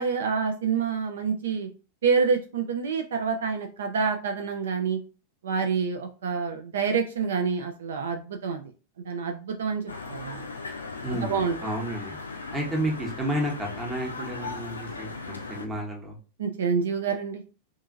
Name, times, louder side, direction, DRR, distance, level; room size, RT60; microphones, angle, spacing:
voice 1, 0.0-1.7 2.0-5.0 5.4-8.6 9.0-9.8 10.1-10.4 11.1-11.6 16.4-17.4, right 5 dB, 65° right, 4 dB, 0.3 m, -27 dB
sound 1, 9.9-15.7, left 3 dB, 75° left, 0.4 m, -38 dB
voice 2, 11.0-12.2 12.5-16.2, right 1 dB, 10° right, -1 dB, 0.9 m, -31 dB
2.7 x 2.5 x 2.5 m, 0.36 s
figure-of-eight pair, 90°, 0 cm